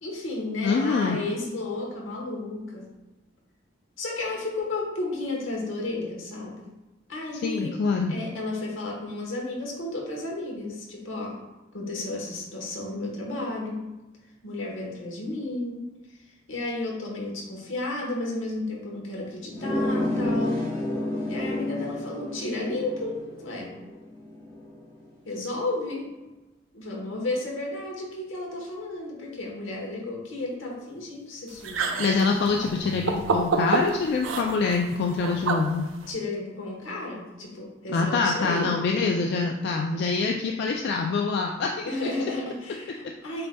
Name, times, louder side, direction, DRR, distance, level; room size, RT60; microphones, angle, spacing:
voice 1, 0.0-2.9 4.0-6.7 7.1-7.8 8.1-11.4 11.7-13.9 14.4-15.9 16.5-20.7 21.3-23.7 25.2-26.1 26.7-32.0 36.1-38.7 41.8-43.5, left 2 dB, 85° left, -2 dB, 1.1 m, -33 dB
voice 2, 0.6-1.2 7.4-8.1 32.0-35.9 37.9-41.9, left 4 dB, 60° left, 1 dB, 0.3 m, -25 dB
sound 1, 19.5-24.8, left 1 dB, 20° left, 0.8 m, -30 dB
sound 2, 31.5-36.1, right 4 dB, 85° right, 0.5 m, -29 dB
7.6 x 2.7 x 2.2 m, 1.1 s
head